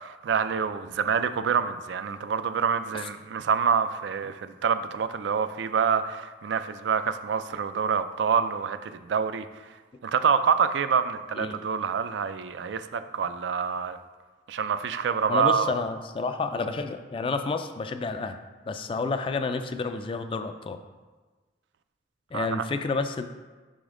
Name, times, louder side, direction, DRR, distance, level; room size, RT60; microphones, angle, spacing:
voice 1, 0.0-9.5 10.0-14.0 14.5-15.7 22.3-22.6, right 6 dB, 80° right, 10 dB, 0.3 m, -26 dB
voice 2, 15.3-18.4 18.7-20.8 22.3-23.3, left 4 dB, 30° left, 8 dB, 0.3 m, -30 dB
6.1 x 5.1 x 3.7 m, 1.3 s
head